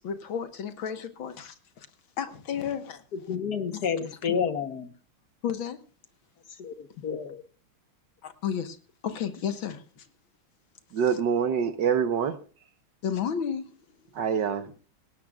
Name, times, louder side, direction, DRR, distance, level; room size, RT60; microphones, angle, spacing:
voice 1, 0.0-1.9 2.2-3.0 3.7-3.9 5.4-5.8 8.2-8.8 9.0-10.1 13.0-13.8, left 8 dB, 70° left, 9 dB, 2.1 m, -32 dB
voice 2, 3.1-4.9 6.6-7.4, left 6 dB, 55° left, 10 dB, 1.5 m, -30 dB
voice 3, 10.9-12.4 14.1-14.7, right 7 dB, 60° right, 11 dB, 1.6 m, -25 dB
18.0 x 18.0 x 2.4 m, 0.36 s
omnidirectional pair, 2.3 m